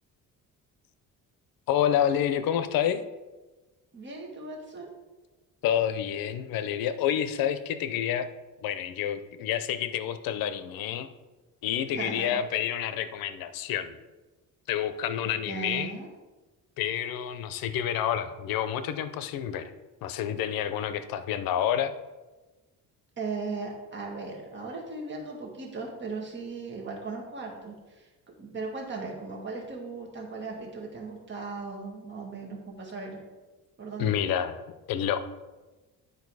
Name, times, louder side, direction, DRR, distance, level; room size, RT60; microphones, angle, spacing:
voice 1, 1.7-3.0 5.6-8.3 8.6-11.1 11.6-14.0 14.7-16.0 16.8-19.7 20.0-21.9 34.0-34.6 34.9-35.2, left 10 dB, 85° left, 12 dB, 0.7 m, -28 dB
voice 2, 3.9-4.9 11.9-12.4 15.5-16.1 23.2-33.2 33.8-34.2, right 4 dB, 35° right, -1 dB, 1.8 m, -37 dB
10.5 x 4.6 x 4.8 m, 1.2 s
cardioid pair, 150°, 34 cm